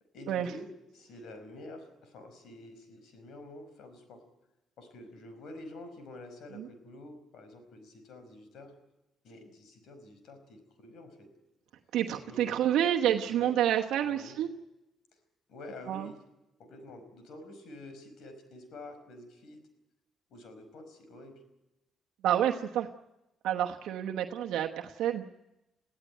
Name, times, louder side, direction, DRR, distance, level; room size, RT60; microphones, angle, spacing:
voice 1, 0.1-4.2 4.8-8.8 9.2-11.3 12.1-12.7 13.0-13.6 14.0-14.4 15.5-16.2 16.6-19.6 20.3-21.4, left 1 dB, 75° left, 9 dB, 5.2 m, -48 dB
voice 2, 11.9-14.5 15.9-16.1 22.2-22.9 23.4-25.2, right 10 dB, 85° right, 2 dB, 1.1 m, -28 dB
22.5 x 15.5 x 9.3 m, 0.95 s
cardioid pair, 90°, 0 cm